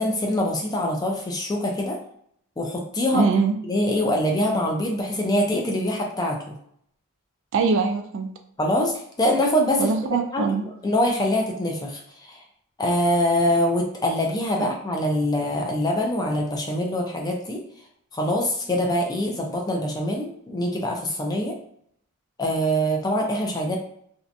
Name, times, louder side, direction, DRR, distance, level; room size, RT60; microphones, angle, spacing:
voice 1, 0.0-2.0 2.6-3.2 3.7-6.5 8.6-9.9 10.3-12.0 12.3-12.4 12.8-17.6 18.1-21.5 22.4-23.8, left 1 dB, 20° left, 1 dB, 0.4 m, -24 dB
voice 2, 3.1-3.5 7.5-8.3 9.8-10.6 14.6-14.7, right 4 dB, 60° right, 5 dB, 0.3 m, -22 dB
2.7 x 2.1 x 2.5 m, 0.67 s
head